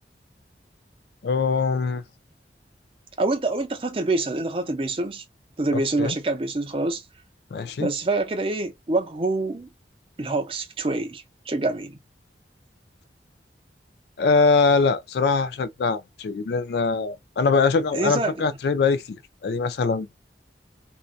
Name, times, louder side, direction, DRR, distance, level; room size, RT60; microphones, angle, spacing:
voice 1, 1.2-2.0 5.7-6.2 7.5-7.9 14.2-20.1, left 4 dB, 70° left, 0.3 m, -23 dB
voice 2, 3.2-5.2 5.6-7.0 7.8-9.7 10.2-12.0 17.9-18.6, right 2 dB, 30° right, 0.5 m, -26 dB
2.6 x 2.2 x 2.3 m
head